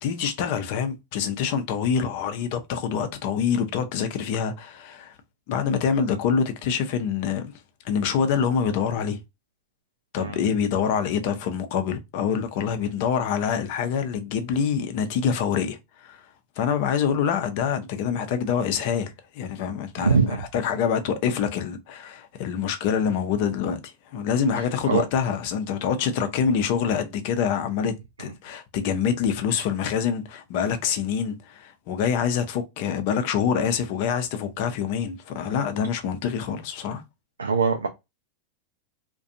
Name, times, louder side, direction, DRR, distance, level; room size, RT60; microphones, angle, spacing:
voice 1, 0.0-5.1 5.5-7.5 7.8-9.2 10.1-16.2 16.6-23.8 24.1-27.9 28.2-37.0, left 7 dB, 55° left, 0.6 m, -26 dB
voice 2, 20.0-20.4 24.9-25.0 37.4-37.9, right 5 dB, 90° right, 0.3 m, -22 dB
2.4 x 2.2 x 2.6 m
hypercardioid pair, 95°, 0 cm